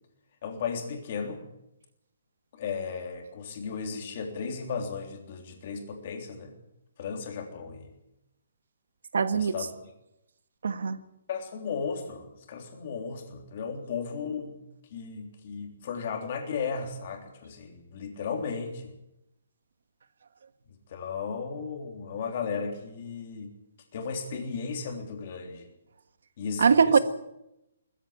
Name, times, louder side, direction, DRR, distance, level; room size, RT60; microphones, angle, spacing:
voice 1, 0.4-1.4 2.5-6.5 7.0-7.9 9.3-9.7 11.3-14.6 14.9-18.9 20.9-23.5 23.9-25.7 26.4-27.0, left 5 dB, 35° left, 3.4 m, -35 dB
voice 2, 9.1-9.6 10.6-11.0 26.6-27.0, right 5 dB, 70° right, 1.5 m, -21 dB
20.5 x 14.5 x 8.7 m
hypercardioid pair, 175°, 0 cm